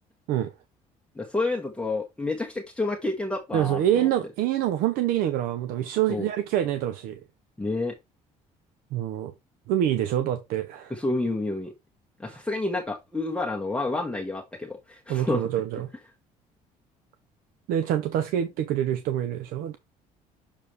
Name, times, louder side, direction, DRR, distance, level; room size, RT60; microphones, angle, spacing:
voice 1, 1.1-4.1 6.1-6.3 7.6-7.9 10.9-11.7 12.2-15.4, left 2 dB, 5° left, 1.3 m, -29 dB
voice 2, 3.5-7.2 8.9-9.3 9.7-10.9 12.3-12.4 15.1-15.9 17.7-19.8, right 11 dB, 85° right, 0.7 m, -26 dB
6.8 x 4.7 x 3.4 m
cardioid pair, 100°, 14 cm